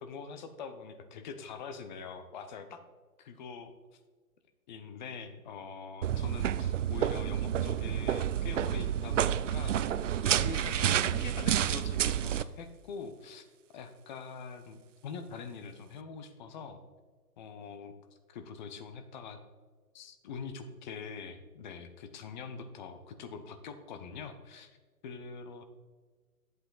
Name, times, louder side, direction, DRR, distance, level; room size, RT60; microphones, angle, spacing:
voice 1, 0.0-2.8 3.3-3.7 4.7-9.8 10.2-13.5 13.7-16.8 17.4-17.9 18.3-19.4 19.9-24.8 25.0-25.6, left 5 dB, 30° left, 8 dB, 0.8 m, -44 dB
sound 1, 6.0-12.4, right 10 dB, 55° right, 0.5 m, -29 dB
11.5 x 8.0 x 3.9 m, 1.5 s
figure-of-eight pair, 130°, 47 cm